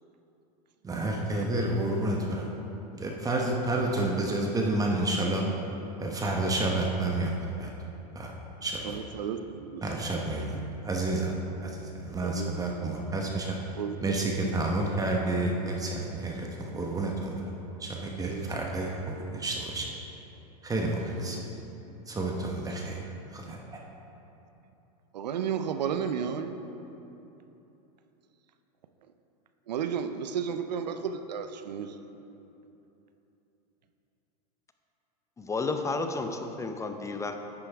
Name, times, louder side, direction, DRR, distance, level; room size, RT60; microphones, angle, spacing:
voice 1, 0.8-2.5 3.0-5.4 6.0-7.7 8.1-8.3 8.6-9.0 9.8-10.5 10.8-11.4 11.6-13.6 14.0-17.4 17.8-19.9 20.6-21.4 22.1-23.0 23.3-23.6, right 2 dB, 15° right, 0 dB, 1.0 m, -30 dB
voice 2, 8.8-9.8 10.4-10.5 12.2-12.7 13.8-14.0 18.2-18.7 21.1-21.5 22.5-22.6 25.1-26.6 29.7-32.0, right 7 dB, 85° right, 9 dB, 0.6 m, -33 dB
voice 3, 35.4-37.3, left 3 dB, 15° left, 6 dB, 0.6 m, -32 dB
9.9 x 9.6 x 3.5 m, 3.0 s
hypercardioid pair, 110°, 21 cm